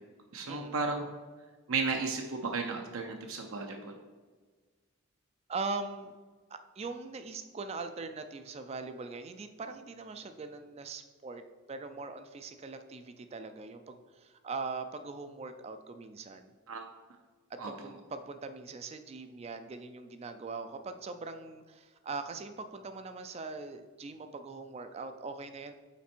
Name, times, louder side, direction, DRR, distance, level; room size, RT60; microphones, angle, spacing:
voice 1, 0.3-1.1 1.7-3.9 16.7-16.8 17.6-17.7, right 4 dB, 70° right, 3 dB, 0.6 m, -34 dB
voice 2, 5.5-6.1 6.5-11.4 11.7-16.5 17.5-25.7, right 4 dB, 30° right, 8 dB, 0.3 m, -41 dB
5.8 x 4.2 x 4.4 m, 1.4 s
head